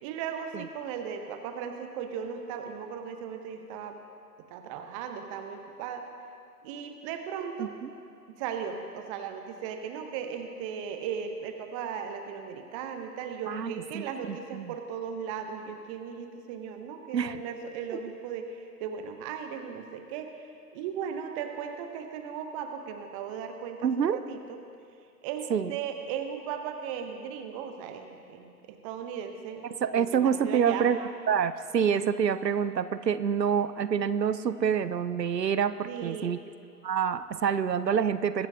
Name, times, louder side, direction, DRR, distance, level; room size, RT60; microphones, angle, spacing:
voice 1, 0.0-3.9 4.5-6.0 6.6-7.7 8.3-20.3 20.7-24.6 25.2-29.7 29.9-30.9 35.8-36.4, right 7 dB, 20° right, 6 dB, 0.7 m, -37 dB
voice 2, 7.6-7.9 13.5-14.7 17.1-17.4 23.8-24.2 25.5-25.7 29.6-31.0 31.3-36.4 36.8-38.5, right 7 dB, 85° right, 14 dB, 0.7 m, -27 dB
22.0 x 12.0 x 2.7 m, 2.4 s
figure-of-eight pair, 120°, 48 cm